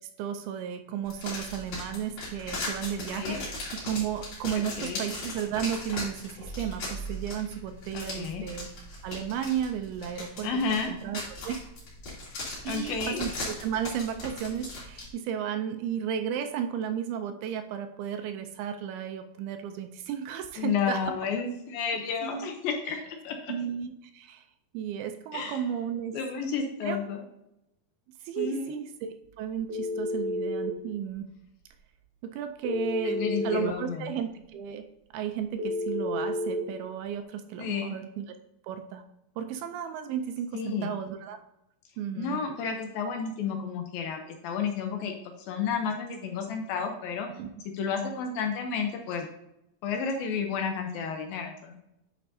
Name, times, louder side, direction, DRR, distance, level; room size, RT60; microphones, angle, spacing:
voice 1, 0.2-3.4 3.8-8.7 9.0-10.5 10.9-11.6 12.6-13.3 13.6-21.0 22.2-22.5 23.5-24.4 24.7-26.2 26.9-27.0 28.2-31.3 32.2-34.9 35.1-38.2 38.6-39.0 39.4-41.4 42.0-42.4 47.4-47.5, right 8 dB, 80° right, 7 dB, 2.4 m, -33 dB
sound 1, 1.1-15.1, left 1 dB, 50° left, 3.9 m, -38 dB
voice 2, 3.1-3.4 4.5-5.0 7.9-8.5 10.4-10.9 12.6-13.3 20.6-23.5 25.3-25.6 26.1-27.2 28.4-28.8 33.0-34.1 37.6-38.0 40.5-41.0 42.1-47.3 47.7-49.3 49.8-51.8, left 6 dB, 75° left, 4 dB, 2.3 m, -31 dB
Telephone, 29.7-30.7 32.6-33.7 35.6-36.6, left 1 dB, 55° right, 1.7 m, -30 dB
10.0 x 5.2 x 2.7 m, 0.85 s
omnidirectional pair, 4.7 m